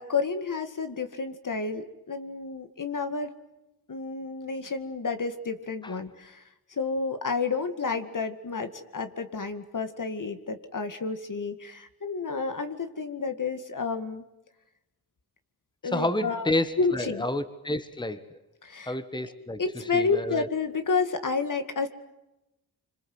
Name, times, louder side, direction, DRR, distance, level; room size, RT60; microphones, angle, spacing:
voice 1, 0.0-3.3 3.9-6.4 6.7-14.2 15.8-16.5 16.8-17.2 18.6-19.0 19.6-21.9, left 4 dB, 55° left, 8 dB, 2.2 m, -30 dB
voice 2, 15.9-18.4 18.9-19.6 19.9-20.5, left 1 dB, 10° left, 11 dB, 1.6 m, -30 dB
26.5 x 26.0 x 8.0 m, 0.93 s
wide cardioid pair, 80°, 38 cm